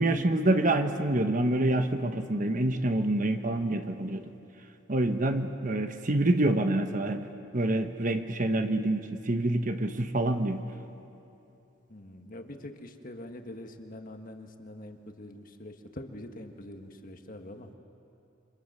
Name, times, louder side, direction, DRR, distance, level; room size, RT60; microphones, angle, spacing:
voice 1, 0.0-4.3 4.9-7.2 7.5-10.6, right 1 dB, 40° right, 7 dB, 1.1 m, -27 dB
voice 2, 11.9-17.7, left 1 dB, 45° left, 5 dB, 1.7 m, -44 dB
29.0 x 25.0 x 6.8 m, 2.8 s
head